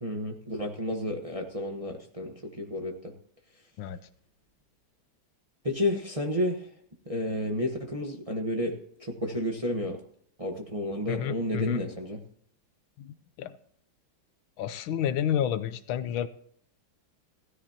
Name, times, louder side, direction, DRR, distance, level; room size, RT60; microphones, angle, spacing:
voice 1, 0.0-3.1 5.6-6.7 7.1-10.0 10.4-12.2, left 1 dB, 25° right, 1 dB, 0.9 m, -31 dB
voice 2, 11.1-11.8 13.0-13.6 14.6-16.3, left 10 dB, 80° left, 14 dB, 1.4 m, -30 dB
16.0 x 13.0 x 2.9 m, 0.63 s
omnidirectional pair, 2.3 m